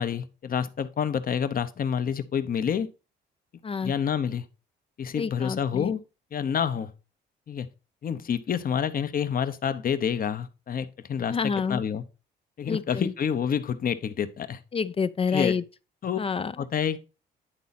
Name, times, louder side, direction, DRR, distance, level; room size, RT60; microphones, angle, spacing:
voice 1, 0.0-2.9 3.8-4.4 5.0-6.0 6.3-6.9 7.5-7.7 8.0-11.4 11.7-12.0 12.6-14.6 15.3-15.6 16.0-16.2 16.6-17.0, left 7 dB, 45° left, 0.8 m, -28 dB
voice 2, 5.2-5.9 11.3-11.8 12.7-13.1 14.7-15.6 16.2-16.6, left 5 dB, 30° left, 0.3 m, -28 dB
9.9 x 4.1 x 4.1 m
cardioid pair, 90°, 20 cm